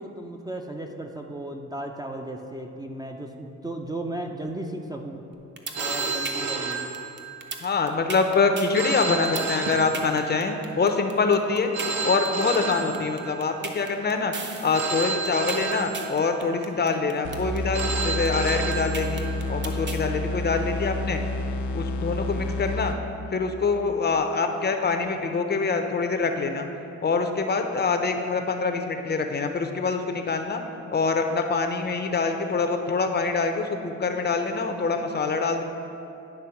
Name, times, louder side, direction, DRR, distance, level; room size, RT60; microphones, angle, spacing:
voice 1, 0.0-5.2 5.8-6.9 12.8-12.9, right 1 dB, 15° right, 2 dB, 0.5 m, -35 dB
sound 1, 5.3-20.0, right 3 dB, 35° right, 0.8 m, -36 dB
Telephone, 5.7-7.6 8.7-10.6 11.7-13.6 14.7-16.6 17.7-19.6, right 4 dB, 65° right, 1.0 m, -31 dB
voice 2, 7.6-11.7 12.0-14.3 14.6-21.2 21.7-22.9 23.3-26.7 27.0-30.6 30.9-35.6, left 4 dB, 35° left, 6 dB, 0.6 m, -25 dB
sound 2, 17.2-23.3, left 1 dB, 75° left, 0.6 m, -30 dB
10.0 x 3.5 x 5.8 m, 2.7 s
cardioid pair, 90°, 30 cm